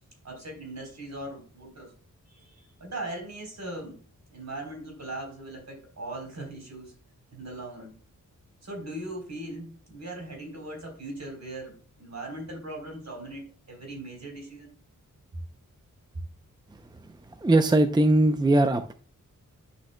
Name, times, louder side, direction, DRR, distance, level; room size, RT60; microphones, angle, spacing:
voice 1, 0.2-1.9 2.3-4.0 4.3-6.9 7.3-8.0 8.6-14.7, right 1 dB, 55° right, 2 dB, 3.8 m, -39 dB
voice 2, 17.4-18.9, right 2 dB, 15° right, 8 dB, 0.5 m, -20 dB
10.5 x 5.9 x 2.2 m, 0.40 s
wide cardioid pair, 85°, 32 cm